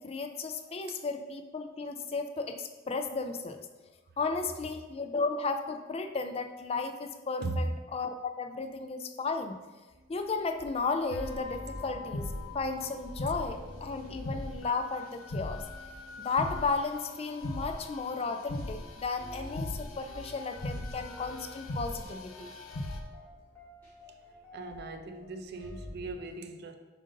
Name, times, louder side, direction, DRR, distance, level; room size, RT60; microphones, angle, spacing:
voice 1, 0.0-3.6 4.2-9.6 10.1-15.6 16.2-22.5, left 4 dB, 30° left, 7 dB, 0.3 m, -34 dB
voice 2, 7.4-7.7 24.5-26.7, right 2 dB, 50° right, 7 dB, 0.5 m, -37 dB
sound 1, 9.9-26.1, left 1 dB, 10° left, 1.7 m, -49 dB
sound 2, 11.1-23.0, left 1 dB, 75° left, 0.6 m, -40 dB
7.4 x 2.6 x 5.2 m, 1.2 s
head